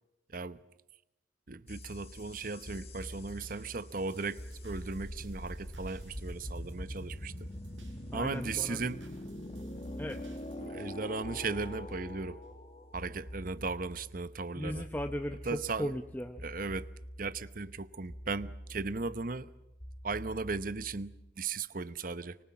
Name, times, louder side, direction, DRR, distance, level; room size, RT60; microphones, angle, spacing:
voice 1, 1.5-7.3 8.1-9.0 10.6-12.4 12.9-14.9 15.5-15.9 16.4-16.9 17.2-19.5 20.0-22.4, right 4 dB, 45° right, 0.9 m, -37 dB
sound 1, 1.7-21.3, equal, 30° left, 1.7 m, -45 dB
sound 2, 1.9-12.0 12.4-12.5, right 1 dB, 85° right, 5.6 m, -56 dB
voice 2, 8.1-8.8 10.0-10.2 14.5-16.4, equal, 10° left, 0.8 m, -37 dB
25.0 x 25.0 x 7.3 m
head